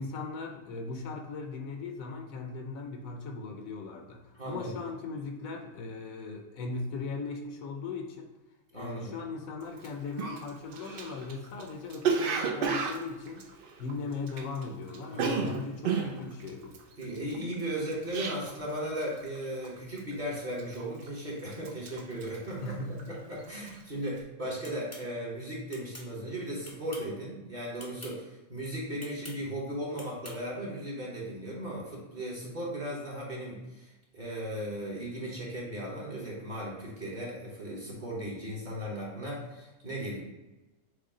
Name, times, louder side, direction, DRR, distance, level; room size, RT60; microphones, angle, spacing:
voice 1, 0.0-8.3 8.7-13.5 13.8-16.8 22.6-23.0, left 4 dB, 70° left, 4 dB, 1.0 m, -38 dB
voice 2, 4.4-4.8 8.7-9.2 15.1-15.6 17.0-40.2, right 1 dB, 35° right, -5 dB, 1.1 m, -37 dB
Cough, 9.8-9.9 10.2-14.6 14.9-18.7 19.0-19.4 19.6-20.1 20.6-21.2 21.5-23.2 23.5-23.8, right 5 dB, 80° right, 0.5 m, -32 dB
sound 1, 24.6-25.1 25.7-26.1 26.6-27.1 27.8-28.1 29.0-29.4 30.0-30.4, left 1 dB, 20° left, 0.4 m, -46 dB
6.4 x 2.2 x 3.7 m, 1.1 s
omnidirectional pair, 1.5 m